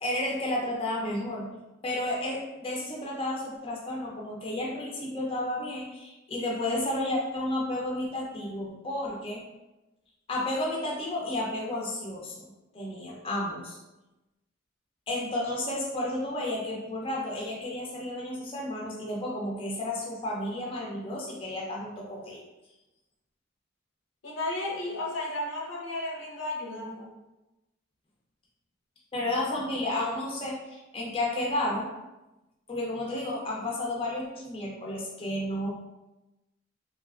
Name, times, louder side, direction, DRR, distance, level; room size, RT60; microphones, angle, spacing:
voice 1, 0.0-9.5 10.3-13.8 15.1-22.4 29.1-31.9 32.7-35.7, left 1 dB, 30° left, -3 dB, 0.5 m, -32 dB
voice 2, 24.2-27.1, left 2 dB, 75° left, -1 dB, 0.7 m, -33 dB
3.2 x 2.6 x 2.4 m, 1.0 s
head